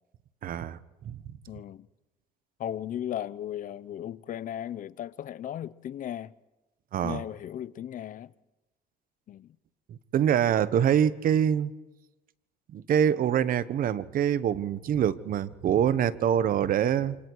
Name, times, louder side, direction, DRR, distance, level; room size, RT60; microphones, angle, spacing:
voice 1, 0.4-1.2 6.9-7.2 9.9-11.7 12.7-17.2, right 9 dB, 55° right, 1.0 m, -25 dB
voice 2, 1.5-1.9 2.6-6.3 7.0-8.3 9.3-9.5, left 11 dB, 50° left, 0.7 m, -36 dB
29.5 x 27.5 x 4.7 m
cardioid pair, 110°, 17 cm